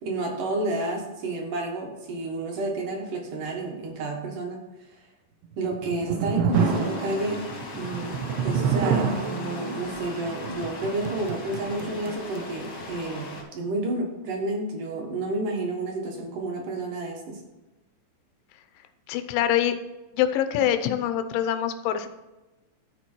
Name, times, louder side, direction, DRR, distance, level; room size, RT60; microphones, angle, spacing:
voice 1, 0.0-4.6 5.6-7.4 7.8-17.4, right 2 dB, 60° right, 1 dB, 2.4 m, -30 dB
sound 1, 5.5-12.7, right 6 dB, 80° right, 2.8 m, -29 dB
sound 2, 6.5-13.4, left 2 dB, 55° left, 1.1 m, -39 dB
voice 2, 19.1-19.7 20.1-22.1, left 10 dB, 85° left, 10 dB, 3.0 m, -24 dB
13.0 x 4.7 x 4.4 m, 1.1 s
omnidirectional pair, 5.3 m